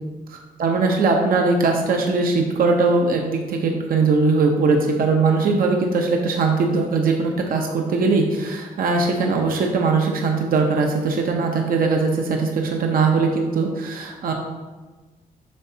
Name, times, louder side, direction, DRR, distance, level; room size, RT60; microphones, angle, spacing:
voice 1, 0.3-14.3, right 4 dB, 75° right, 2 dB, 0.7 m, -20 dB
7.7 x 5.8 x 2.8 m, 1.3 s
cardioid pair, 95°, 15 cm